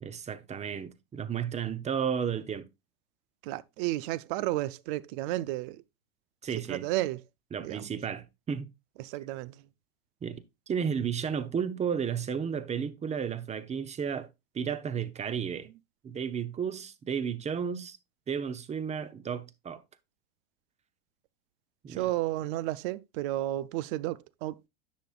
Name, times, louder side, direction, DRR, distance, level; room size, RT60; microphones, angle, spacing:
voice 1, 0.0-2.7 6.4-6.8 7.5-8.7 10.2-14.3 14.5-15.7 16.0-18.0 18.3-19.8 21.8-22.1, right 7 dB, 20° right, 0.8 m, -33 dB
voice 2, 3.4-5.8 6.7-7.2 7.6-7.9 9.0-9.6 21.9-24.7, right 16 dB, 60° right, 0.6 m, -32 dB
10.5 x 6.3 x 2.4 m
hypercardioid pair, 110°, 30 cm